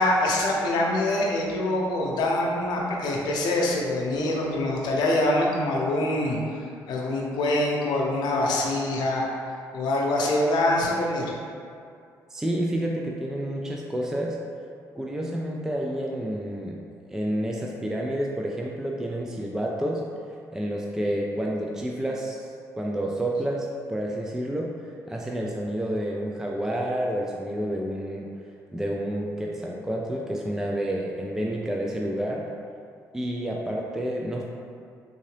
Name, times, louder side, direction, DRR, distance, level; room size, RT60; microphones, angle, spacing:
voice 1, 0.0-6.4 6.9-9.2 9.7-11.2, left 1 dB, 75° left, -2 dB, 0.7 m, -24 dB
voice 2, 12.3-14.4 14.9-16.8 17.1-20.0 20.5-28.3 28.7-32.5 33.1-34.4, right 1 dB, 5° right, -1 dB, 0.3 m, -29 dB
3.6 x 2.7 x 3.2 m, 2.4 s
supercardioid pair, 70°, 7 cm